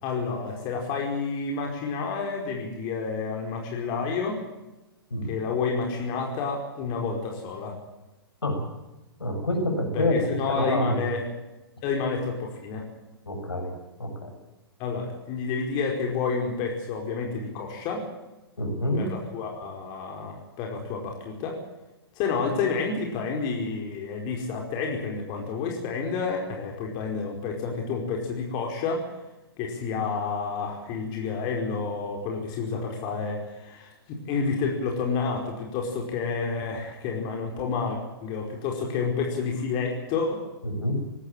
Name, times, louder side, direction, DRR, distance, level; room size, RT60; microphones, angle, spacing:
voice 1, 0.0-4.4 5.3-7.8 9.9-11.2 11.8-12.8 14.8-18.1 18.9-21.6 22.2-29.1 29.6-40.4, left 4 dB, 35° left, 1 dB, 4.9 m, -29 dB
voice 2, 9.2-10.2 10.5-11.0 13.3-13.7 14.0-14.3 18.6-19.1 40.6-41.0, left 1 dB, 75° left, 3 dB, 7.3 m, -27 dB
19.5 x 18.0 x 8.9 m, 1.0 s
figure-of-eight pair, 115°, 13 cm